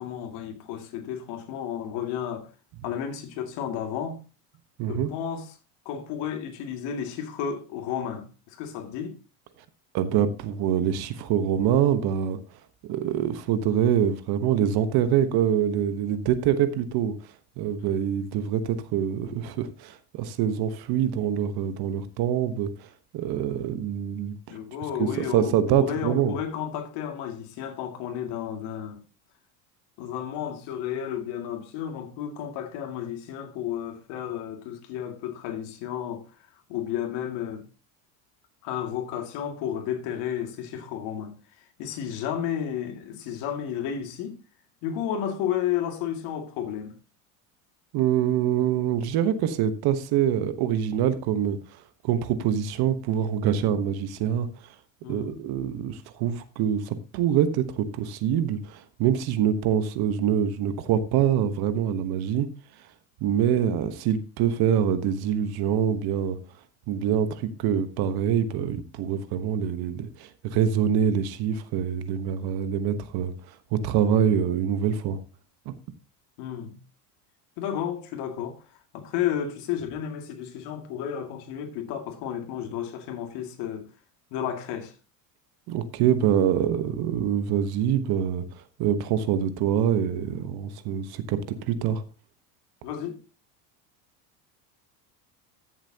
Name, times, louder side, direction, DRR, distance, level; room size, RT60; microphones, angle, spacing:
voice 1, 0.0-2.5 2.8-4.2 4.9-5.5 5.9-9.2 24.5-29.0 30.0-36.3 36.7-37.6 38.6-41.4 41.8-44.4 44.8-46.9 55.0-55.4 76.4-76.8 77.6-78.6 78.9-83.9 84.3-84.9 92.8-93.2, left 9 dB, 65° left, 2.4 m, -32 dB
voice 2, 4.8-5.1 9.9-12.4 12.8-17.1 17.6-24.6 25.0-26.3 47.9-51.6 52.0-54.5 55.1-62.5 63.2-66.4 66.9-75.2 75.6-75.7 85.7-88.5 88.8-91.4 91.7-92.0, right 9 dB, 55° right, 1.2 m, -25 dB
14.0 x 7.3 x 2.9 m
supercardioid pair, 120°, 45 cm